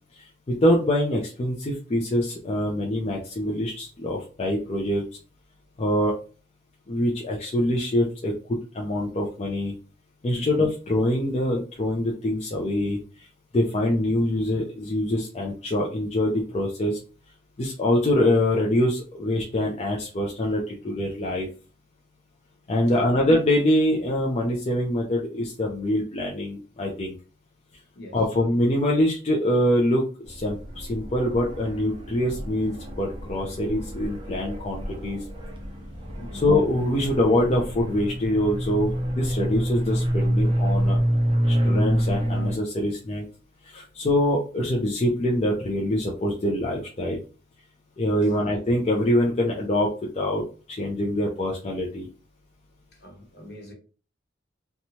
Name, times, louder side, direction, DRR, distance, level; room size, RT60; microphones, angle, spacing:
voice 1, 0.1-5.0 5.8-6.1 6.9-9.7 10.2-13.3 13.5-17.0 17.6-21.5 22.7-27.1 28.1-35.2 36.3-41.0 41.4-43.2 43.6-47.2 48.0-50.4 50.7-52.1, left 1 dB, 35° left, 0.4 m, -24 dB
sound 1, 30.3-42.6, equal, 25° right, 0.5 m, -27 dB
voice 2, 36.2-36.5 48.2-48.6 52.9-53.7, left 1 dB, 60° left, 1.0 m, -43 dB
2.9 x 2.2 x 2.7 m
head